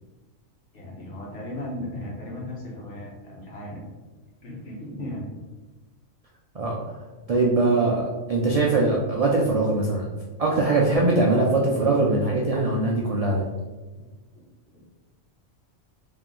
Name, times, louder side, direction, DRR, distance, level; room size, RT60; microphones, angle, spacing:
voice 1, 0.7-3.9 4.4-5.3 14.0-14.1 14.3-14.4 14.7-14.8, left 1 dB, 60° left, -4 dB, 1.4 m, -36 dB
voice 2, 6.5-7.0 7.3-10.0 10.4-13.5, right 2 dB, 75° right, -3 dB, 0.3 m, -22 dB
3.3 x 2.9 x 3.7 m, 1.2 s
omnidirectional pair, 1.4 m